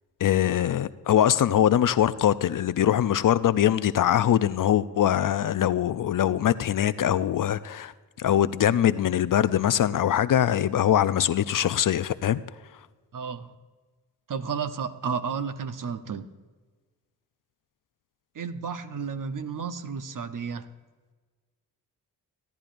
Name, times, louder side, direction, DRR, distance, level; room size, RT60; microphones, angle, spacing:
voice 1, 0.2-7.9 8.2-12.4, left 10 dB, 50° left, 15 dB, 0.5 m, -22 dB
voice 2, 13.1-13.5 14.3-16.3 18.3-20.7, right 6 dB, 50° right, 10 dB, 0.9 m, -32 dB
16.5 x 10.5 x 2.5 m, 1.4 s
supercardioid pair, 40°, 41 cm